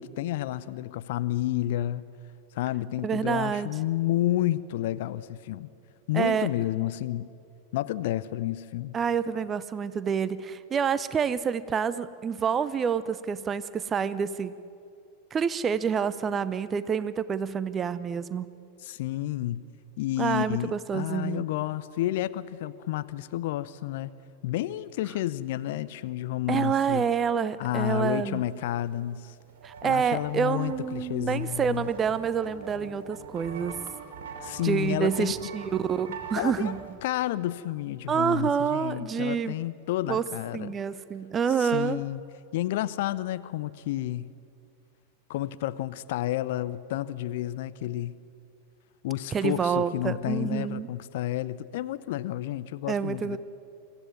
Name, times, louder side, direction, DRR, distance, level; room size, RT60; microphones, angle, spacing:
voice 1, 0.0-2.0 2.5-5.7 6.1-7.3 7.7-9.0 18.8-19.6 20.0-24.1 24.4-27.0 27.6-29.3 29.8-31.9 34.4-35.5 36.4-36.7 37.0-40.8 41.6-42.2 42.5-44.3 45.3-48.2 49.0-53.4, left 14 dB, 50° left, 15 dB, 0.6 m, -30 dB
voice 2, 3.0-3.7 6.1-6.5 8.9-14.5 15.3-18.5 20.2-21.4 26.5-28.4 29.6-33.7 34.6-36.8 38.1-39.6 40.1-40.3 40.5-42.0 49.3-50.9 52.9-53.4, right 7 dB, 25° right, 16 dB, 0.7 m, -27 dB
sound 1, 29.1-29.2 29.4-36.9, right 6 dB, 55° right, 2.8 m, -43 dB
24.0 x 14.5 x 9.6 m, 2.5 s
figure-of-eight pair, 90°, 0 cm